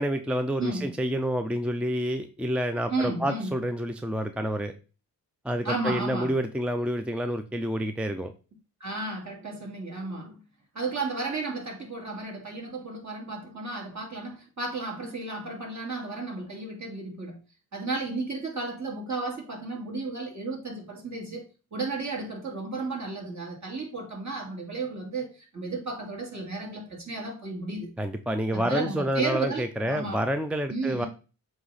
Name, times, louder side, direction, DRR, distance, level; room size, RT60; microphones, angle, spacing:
voice 1, 0.0-4.7 5.4-8.3 28.0-31.1, equal, 5° right, 0.5 m, -28 dB
voice 2, 0.6-0.9 2.9-3.6 5.6-6.4 8.8-10.4 10.7-17.4 17.7-27.9 28.5-30.2 30.7-31.1, right 3 dB, 45° right, 2.8 m, -33 dB
7.7 x 3.0 x 4.1 m
cardioid pair, 60°, 40 cm